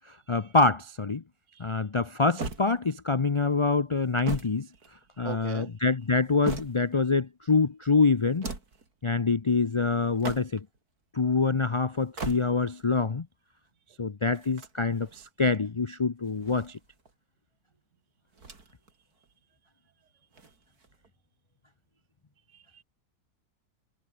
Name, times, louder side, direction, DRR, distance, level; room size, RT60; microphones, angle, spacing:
voice 1, 0.3-1.2 1.6-4.7 5.2-8.5 9.0-10.7 11.1-13.3 14.0-16.8, left 4 dB, 45° left, 0.4 m, -25 dB
sound 1, 2.4-3.2 4.0-5.4 6.0-7.1 8.2-8.9 10.0-10.8 11.9-12.8 14.3-15.3 16.2-17.1 18.3-18.9 19.2-19.3 20.3-21.1, right 3 dB, 80° right, 4.0 m, -40 dB
voice 2, 5.2-5.7 22.5-22.8, right 9 dB, 60° right, 1.0 m, -40 dB
omnidirectional pair, 1.6 m